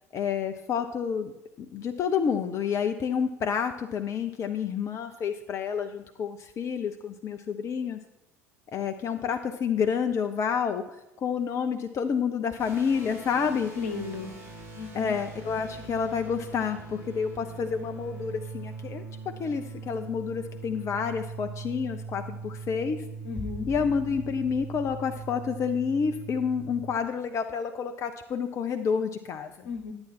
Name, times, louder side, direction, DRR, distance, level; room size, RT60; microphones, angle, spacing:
voice 1, 0.1-1.3 1.6-8.0 8.7-10.8 11.2-13.7 14.9-23.0 23.7-29.7, left 6 dB, 35° left, 7 dB, 0.6 m, -29 dB
sound 1, 12.6-26.9, right 4 dB, 30° right, 4.0 m, -41 dB
voice 2, 13.4-14.3 14.7-15.2 23.2-23.7 29.6-29.9, left 4 dB, 65° left, 6 dB, 1.1 m, -35 dB
11.0 x 8.7 x 4.3 m, 0.90 s
figure-of-eight pair, 65°, 9 cm